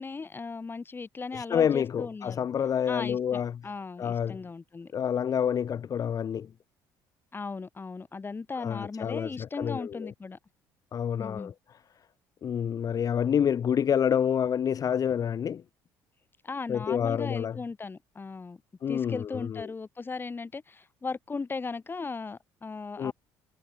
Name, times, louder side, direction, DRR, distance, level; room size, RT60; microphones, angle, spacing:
voice 1, 0.0-2.4 2.9-4.9 7.3-10.4 11.2-11.5 16.4-18.6 18.9-23.1, left 4 dB, 25° left, 2.8 m, -37 dB
voice 2, 1.3-3.6 4.0-4.4 4.9-6.5 8.6-10.1 10.9-11.5 12.4-15.6 16.7-17.6 18.8-19.6 23.0-23.1, left 8 dB, 45° left, 1.4 m, -28 dB
supercardioid pair, 85°, 8 cm